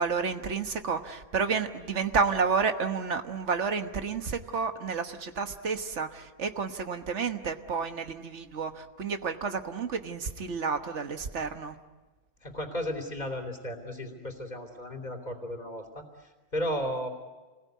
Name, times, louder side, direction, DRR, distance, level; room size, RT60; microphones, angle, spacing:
voice 1, 0.0-11.7, right 5 dB, 85° right, 7 dB, 1.6 m, -30 dB
voice 2, 12.4-17.1, equal, 40° left, 4 dB, 3.3 m, -34 dB
28.5 x 21.0 x 9.4 m, 1.2 s
omnidirectional pair, 1.2 m